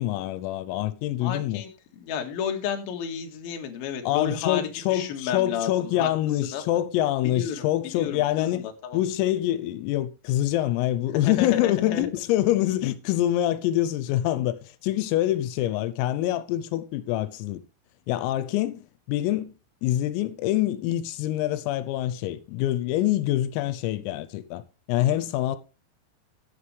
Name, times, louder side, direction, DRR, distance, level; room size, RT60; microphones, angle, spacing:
voice 1, 0.0-1.6 4.1-8.7 8.9-17.6 18.1-19.5 19.8-24.6 24.9-25.6, left 14 dB, 85° left, 3.5 m, -25 dB
voice 2, 1.2-1.7 2.0-4.6 4.9-6.1 6.4-6.6 7.3-7.6 7.9-9.0 11.2-12.1, left 8 dB, 60° left, 3.0 m, -31 dB
14.5 x 8.7 x 3.3 m
omnidirectional pair, 6.0 m